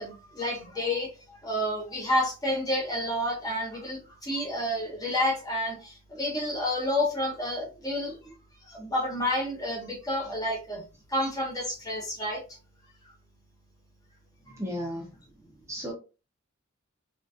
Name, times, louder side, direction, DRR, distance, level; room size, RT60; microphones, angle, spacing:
voice 1, 0.0-8.3 8.6-10.8 11.1-12.6, left 1 dB, 15° left, 0.8 m, -30 dB
voice 2, 14.5-15.1 15.7-15.9, equal, 15° right, 0.6 m, -34 dB
3.8 x 2.5 x 2.4 m
head